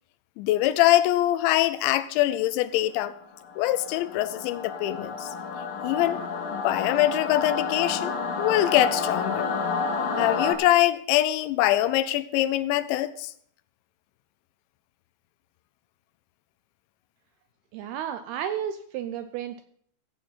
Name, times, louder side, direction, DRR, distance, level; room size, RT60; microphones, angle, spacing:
voice 1, 0.4-3.1 3.6-5.3 5.8-6.2 6.5-9.5 10.2-13.3, left 14 dB, 90° left, 3.0 m, -23 dB
Singing / Musical instrument, 3.4-10.5, left 4 dB, 65° left, 2.8 m, -30 dB
voice 2, 17.7-19.6, right 9 dB, 85° right, 2.3 m, -32 dB
16.0 x 8.5 x 4.1 m
omnidirectional pair, 5.1 m